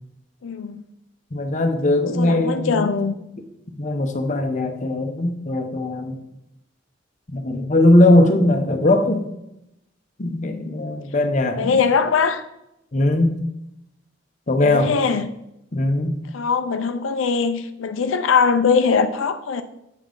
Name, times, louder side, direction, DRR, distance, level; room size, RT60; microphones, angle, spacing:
voice 1, 0.4-0.8 2.2-3.1 11.6-12.4 14.6-15.3 16.3-19.6, left 5 dB, 90° left, 9 dB, 0.5 m, -21 dB
voice 2, 1.3-2.9 3.7-6.2 7.3-9.3 10.2-11.8 12.9-13.4 14.5-14.9 15.7-16.1, left 1 dB, 40° left, 5 dB, 0.7 m, -19 dB
8.3 x 5.4 x 3.8 m, 0.85 s
head